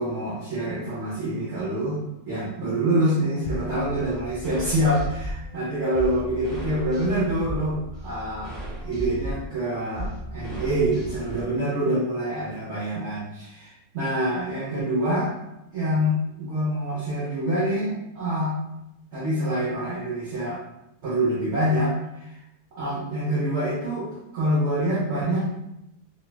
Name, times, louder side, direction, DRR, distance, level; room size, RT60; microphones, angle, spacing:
voice 1, 0.0-2.0 2.3-8.5 8.8-15.3 15.7-18.5 19.1-20.6 21.0-22.3 22.8-25.5, right 1 dB, 55° right, -8 dB, 0.9 m, -26 dB
sound 1, 3.4-11.4, right 1 dB, ahead, 0.6 m, -35 dB
3.0 x 2.3 x 2.2 m, 0.87 s
omnidirectional pair, 1.7 m